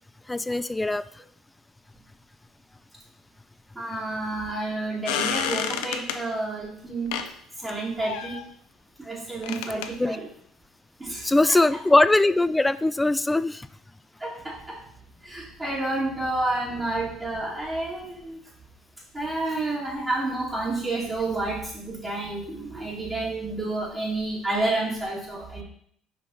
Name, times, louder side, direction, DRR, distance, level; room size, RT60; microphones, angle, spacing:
voice 1, 0.3-1.0 10.0-10.2 11.2-13.7, left 2 dB, 15° left, 16 dB, 0.3 m, -21 dB
voice 2, 3.7-7.1 7.6-8.4 9.0-10.2 11.0-11.6 14.2-14.8 15.2-18.4 19.1-25.6, right 2 dB, 20° right, -7 dB, 2.4 m, -30 dB
sound 1, 5.1-6.2 7.1-7.3 8.0-8.4 9.4-9.9, left 9 dB, 75° left, 0.5 m, -29 dB
5.5 x 5.4 x 4.0 m, 0.63 s
hypercardioid pair, 60°, 0 cm